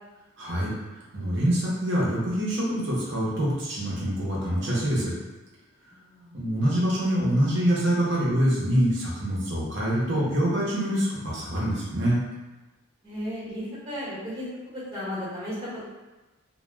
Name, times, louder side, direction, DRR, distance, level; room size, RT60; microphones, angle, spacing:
voice 1, 0.4-0.7 1.1-5.1 6.3-12.2, equal, 55° right, -6 dB, 0.7 m, -25 dB
voice 2, 5.9-6.3 13.0-15.8, equal, 30° right, -11 dB, 1.2 m, -35 dB
2.2 x 2.1 x 3.1 m, 1.1 s
head